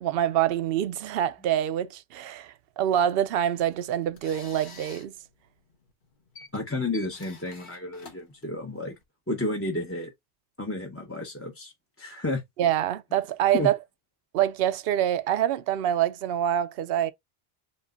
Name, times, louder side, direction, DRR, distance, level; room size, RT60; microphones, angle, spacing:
voice 1, 0.0-5.1 12.6-13.8 14.3-17.1, right 11 dB, 70° right, 0.7 m, -25 dB
sound 1, 3.4-9.0, left 4 dB, 50° left, 1.2 m, -50 dB
voice 2, 6.5-8.9 9.3-10.1 10.6-12.4 13.5-13.7, left 2 dB, 15° left, 0.7 m, -31 dB
7.7 x 2.9 x 2.4 m
omnidirectional pair, 1.1 m